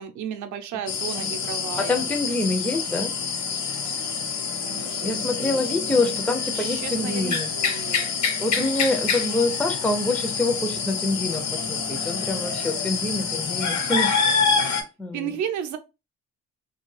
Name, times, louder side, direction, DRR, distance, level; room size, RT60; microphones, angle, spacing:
voice 1, 0.0-2.0 4.6-5.9 6.5-8.1 15.1-15.8, right 8 dB, 70° right, 0.5 m, -34 dB
sound 1, 0.9-14.8, left 5 dB, 65° left, 0.8 m, -27 dB
voice 2, 1.8-3.1 5.0-7.5 8.4-14.2 15.0-15.3, left 2 dB, 5° left, 0.3 m, -26 dB
2.4 x 2.2 x 3.1 m
cardioid pair, 90°, 30 cm